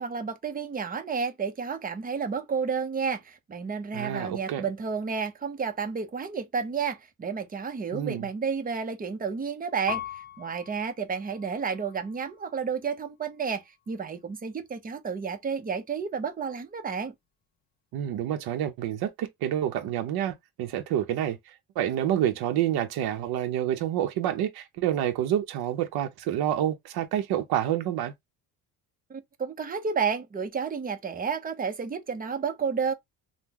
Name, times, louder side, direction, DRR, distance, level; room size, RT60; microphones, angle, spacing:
voice 1, 0.0-17.1 29.1-32.9, right 6 dB, 25° right, 0.7 m, -31 dB
voice 2, 3.9-4.6 7.9-8.3 17.9-28.1, right 11 dB, 70° right, 0.7 m, -28 dB
Piano, 9.9-12.6 13.2-14.0, left 11 dB, 45° left, 1.1 m, -42 dB
3.6 x 2.2 x 2.9 m
cardioid pair, 115°, 38 cm